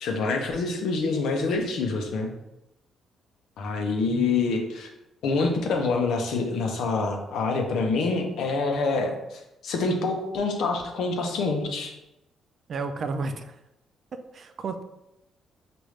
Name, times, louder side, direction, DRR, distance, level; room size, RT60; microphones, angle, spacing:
voice 1, 0.0-2.3 3.6-4.9 5.2-11.9, left 3 dB, 75° left, 3 dB, 0.7 m, -26 dB
voice 2, 4.1-4.5 12.7-13.6 14.1-14.8, right 3 dB, 50° right, 8 dB, 0.4 m, -33 dB
4.9 x 2.6 x 3.2 m, 0.91 s
cardioid pair, 90°, 0 cm